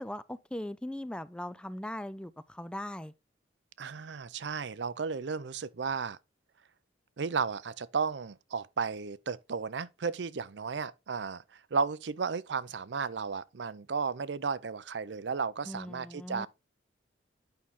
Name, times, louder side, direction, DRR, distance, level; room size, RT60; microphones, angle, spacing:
voice 1, 0.0-3.1 15.7-16.5, left 1 dB, 5° left, 0.3 m, -39 dB
voice 2, 3.8-6.2 7.2-16.5, right 5 dB, 65° right, 0.5 m, -34 dB
8.7 x 5.6 x 3.6 m
head